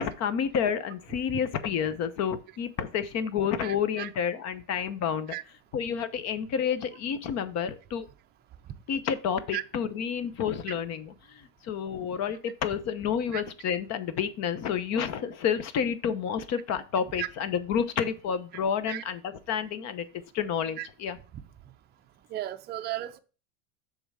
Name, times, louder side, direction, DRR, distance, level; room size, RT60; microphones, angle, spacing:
voice 1, 0.0-5.3 5.7-8.1 8.9-20.1 20.3-21.2, left 7 dB, 40° left, 0.9 m, -30 dB
voice 2, 3.6-4.1 5.3-5.4 9.5-9.6 13.3-13.4 17.2-17.3 18.9-19.0 20.8-20.9 22.3-23.2, right 14 dB, 25° right, 0.5 m, -34 dB
6.9 x 3.6 x 5.5 m
supercardioid pair, 120°, 40 cm